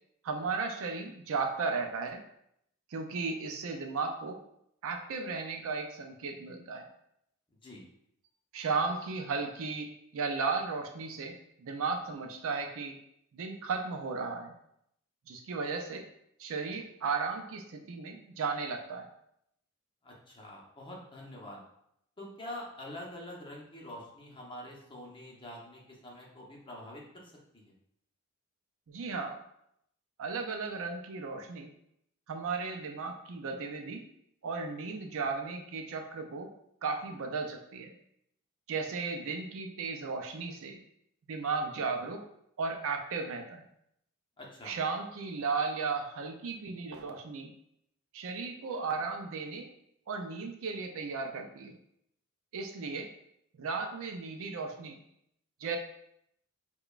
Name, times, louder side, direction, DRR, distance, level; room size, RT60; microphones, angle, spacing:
voice 1, 0.2-2.2 2.9-4.4 4.8-6.9 8.5-13.0 13.3-14.5 15.3-16.0 16.4-19.1 28.9-29.4 30.2-31.7 32.3-34.0 34.4-36.5 36.8-37.9 38.7-40.8 41.3-42.2 42.6-43.6 44.6-47.5 48.1-49.7 50.1-51.8 52.5-53.1 53.6-55.0 55.6-55.8, right 4 dB, 65° right, 4 dB, 0.4 m, -35 dB
voice 2, 20.0-21.6 22.2-27.7 44.4-44.7, left 1 dB, 25° left, -3 dB, 0.8 m, -46 dB
4.8 x 2.3 x 2.4 m, 0.74 s
head